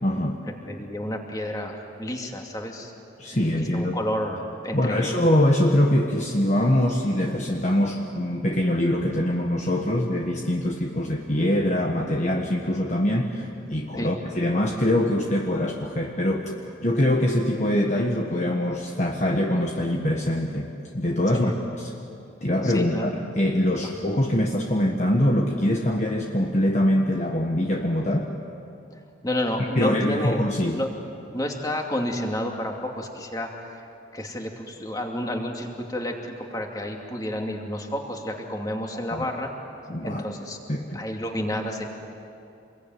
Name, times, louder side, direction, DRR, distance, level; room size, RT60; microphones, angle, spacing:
voice 1, 0.0-0.4 3.2-4.0 4.7-16.5 16.8-21.9 22.4-28.3 29.8-30.8 39.1-39.2 39.9-40.2 40.7-41.0, left 1 dB, 40° left, 1 dB, 1.5 m, -23 dB
voice 2, 0.6-2.9 3.3-5.2 13.9-14.1 21.3-21.5 22.6-23.1 23.8-23.9 29.2-30.9 31.3-33.7 34.1-39.5 40.0-40.6 40.9-41.8, left 1 dB, 20° left, 1 dB, 2.6 m, -30 dB
27.5 x 22.0 x 9.4 m, 2.7 s
head